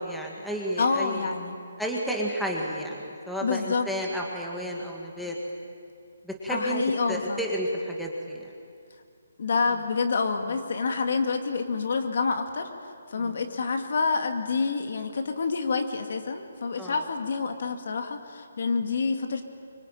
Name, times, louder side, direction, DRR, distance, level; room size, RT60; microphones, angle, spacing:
voice 1, 0.0-1.3 1.8-5.4 6.2-6.8 7.1-8.5 13.2-13.4 16.8-17.0, equal, ahead, -2 dB, 1.8 m, -31 dB
voice 2, 0.8-1.6 3.4-3.9 6.5-7.4 9.4-12.7 13.1-19.4, left 4 dB, 50° left, 6 dB, 2.2 m, -27 dB
25.0 x 23.0 x 9.2 m, 2.3 s
hypercardioid pair, 175°, 0 cm